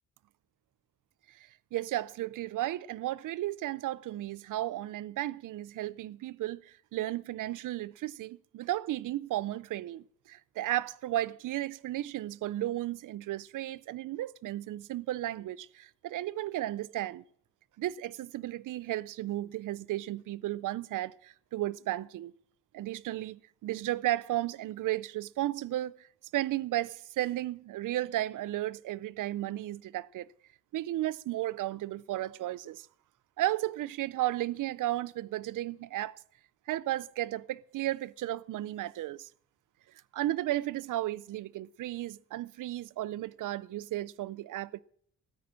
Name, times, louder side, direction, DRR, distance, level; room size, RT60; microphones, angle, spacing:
voice 1, 1.7-17.2 17.8-22.3 22.7-25.9 26.3-30.3 30.7-32.9 33.4-36.2 36.7-39.3 40.1-44.8, right 14 dB, 85° right, 0.5 m, -34 dB
13.0 x 9.4 x 7.4 m
wide cardioid pair, 140°, 31 cm